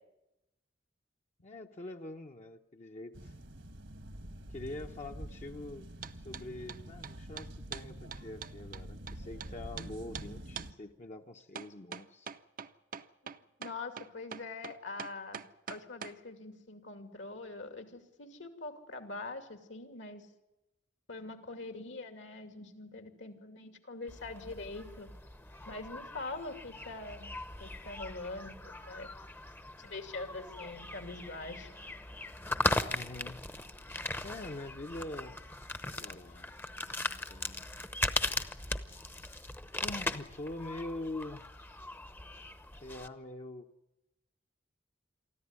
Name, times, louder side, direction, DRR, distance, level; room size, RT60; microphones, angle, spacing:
voice 1, 1.4-3.3 4.5-5.9 6.1-12.3 32.9-33.5 34.2-35.4 35.9-37.6 39.8-41.5 42.8-43.7, left 2 dB, 40° left, 3 dB, 0.9 m, -44 dB
sound 1, 3.1-10.7, right 1 dB, 70° right, 1.5 m, -47 dB
sound 2, 6.0-6.4 6.7-9.5 9.8-9.9 10.1-10.3 10.6-10.7 11.6-16.2, right 7 dB, 50° right, 0.7 m, -43 dB
voice 2, 13.2-15.4 15.7-20.3 21.1-25.1 25.7-27.3 27.6-29.1 29.8-31.7, left 3 dB, 75° left, 6 dB, 2.7 m, -44 dB
sound 3, 24.1-43.1, left 2 dB, 10° left, 0.9 m, -39 dB
24.0 x 14.0 x 9.7 m, 0.96 s
head